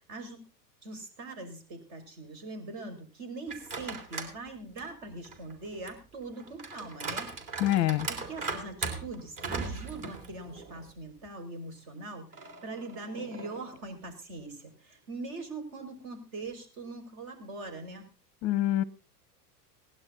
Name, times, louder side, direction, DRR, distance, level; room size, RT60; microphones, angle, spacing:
voice 1, 0.1-0.4 0.8-7.3 8.1-18.1, right 2 dB, 55° right, 6 dB, 5.7 m, -42 dB
sound 1, 3.5-4.4 4.8-10.9 11.3-11.4 12.3-13.8, right 4 dB, 40° right, 3.8 m, -39 dB
voice 2, 7.6-8.1 18.4-18.8, left 14 dB, 35° left, 21 dB, 0.6 m, -25 dB
18.5 x 11.5 x 3.9 m, 0.33 s
hypercardioid pair, 100°, 50 cm